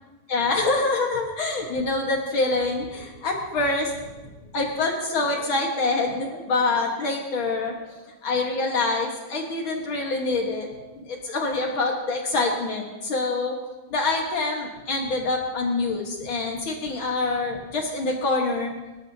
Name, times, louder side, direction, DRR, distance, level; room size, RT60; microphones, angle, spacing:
voice 1, 0.3-3.9 4.5-10.7 10.9-13.6 13.9-18.7, left 3 dB, 90° left, 0 dB, 1.1 m, -26 dB
26.5 x 12.5 x 2.8 m, 1.2 s
omnidirectional pair, 4.7 m